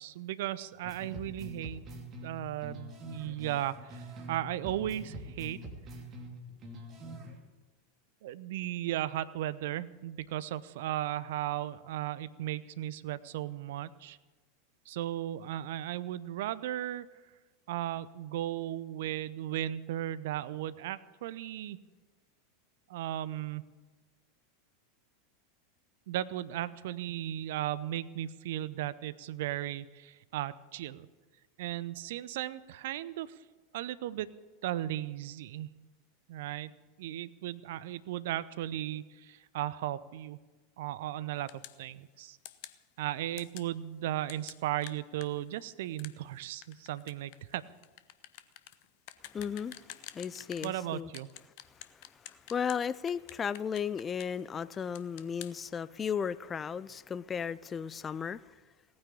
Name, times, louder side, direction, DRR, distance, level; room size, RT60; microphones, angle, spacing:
voice 1, 0.0-1.8 2.2-5.6 8.2-14.2 14.9-17.1 17.7-21.8 22.9-23.7 26.1-31.1 31.6-33.3 33.7-34.3 34.6-35.7 36.3-36.7 37.0-40.4 40.8-42.4 43.0-47.6 50.6-51.3, right 13 dB, 60° right, 17 dB, 0.7 m, -36 dB
sound 1, 0.8-4.4 4.6-7.4, right 1 dB, 35° right, 2.8 m, -45 dB
sound 2, 41.5-41.8 42.4-42.8 43.4-43.7 44.3-50.8 51.1-52.8 53.1-54.4 54.7-55.5, left 15 dB, 50° left, 0.8 m, -48 dB
voice 2, 49.3-49.8 50.1-51.1 52.3-58.4, left 7 dB, 25° left, 17 dB, 0.5 m, -35 dB
18.0 x 9.6 x 8.4 m, 1.2 s
figure-of-eight pair, 85°, 0 cm